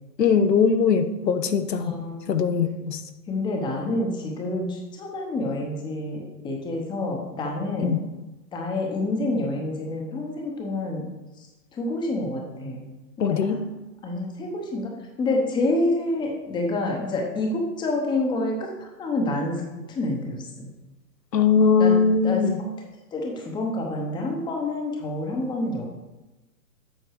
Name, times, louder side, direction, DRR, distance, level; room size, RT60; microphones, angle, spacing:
voice 1, 0.2-1.9 2.3-3.0 7.8-8.0 13.2-13.6 21.3-22.6, left 6 dB, 90° left, 10 dB, 0.9 m, -20 dB
voice 2, 1.8-2.6 3.3-8.0 8.5-11.1 11.4-11.5 11.7-12.8 13.2-13.6 14.0-14.9 15.2-19.6 19.9-20.7 21.8-21.9 22.2-22.4 23.1-25.8, left 2 dB, 10° left, 1 dB, 0.9 m, -28 dB
8.2 x 5.2 x 4.7 m, 1.1 s
hypercardioid pair, 130°, 48 cm